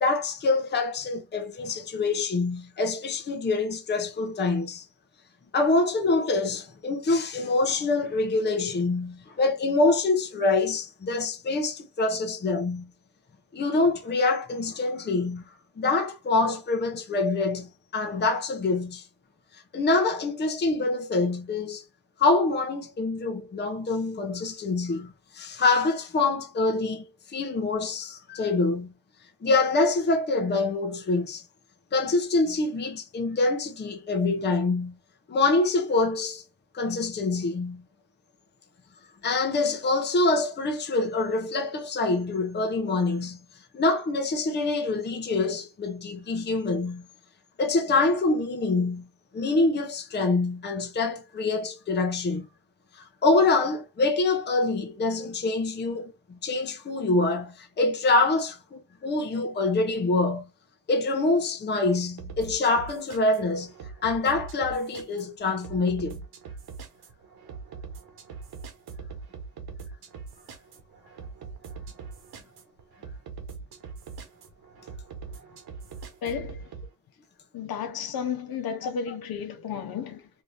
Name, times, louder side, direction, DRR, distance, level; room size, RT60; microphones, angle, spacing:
voice 1, 0.0-4.9 5.5-12.9 13.5-15.4 15.8-19.0 19.7-21.8 22.2-28.9 29.4-31.4 31.9-34.9 35.3-36.4 36.7-37.8 39.2-43.4 43.7-47.0 47.6-49.1 49.3-52.5 52.9-60.4 60.9-63.7 64.0-66.2, left 3 dB, 30° left, 0.6 m, -25 dB
sound 1, 62.2-76.9, right 5 dB, 80° right, 1.0 m, -42 dB
voice 2, 76.2-76.7 77.5-80.3, left 7 dB, 70° left, 0.8 m, -33 dB
2.7 x 2.6 x 3.2 m
cardioid pair, 135°, 37 cm